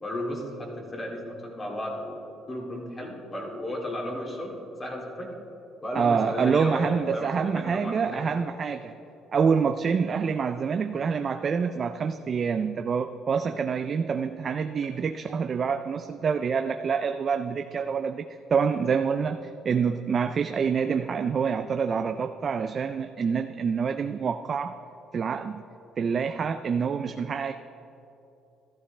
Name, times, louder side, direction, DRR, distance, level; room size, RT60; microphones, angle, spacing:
voice 1, 0.0-5.3 5.8-8.4 10.9-11.1 18.7-18.8, left 1 dB, 25° left, -1 dB, 2.4 m, -34 dB
voice 2, 5.9-8.9 9.3-18.3 18.5-19.4 19.6-24.7 25.1-25.6 26.0-27.5, right 6 dB, 40° right, 8 dB, 0.4 m, -26 dB
14.0 x 12.5 x 3.3 m, 2.8 s
cardioid pair, 100°, 0 cm